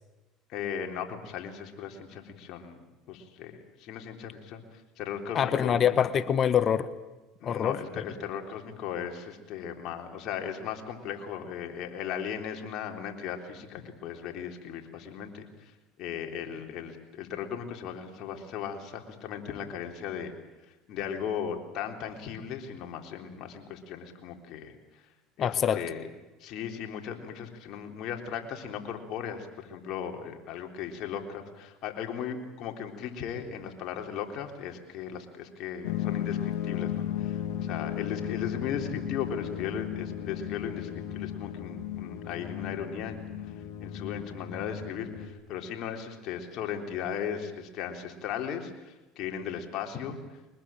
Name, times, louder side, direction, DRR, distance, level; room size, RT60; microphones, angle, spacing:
voice 1, 0.5-5.8 7.4-20.3 20.6-25.0 25.4-26.1 26.4-43.5 43.8-50.4, left 8 dB, 60° left, 3 dB, 3.8 m, -37 dB
voice 2, 5.3-6.9 7.4-7.8 25.4-25.8, left 8 dB, 45° left, 13 dB, 1.2 m, -25 dB
sound 1, 35.8-45.3, left 10 dB, 75° left, 2.7 m, -35 dB
23.5 x 20.5 x 9.0 m, 1.1 s
supercardioid pair, 90°, 0 cm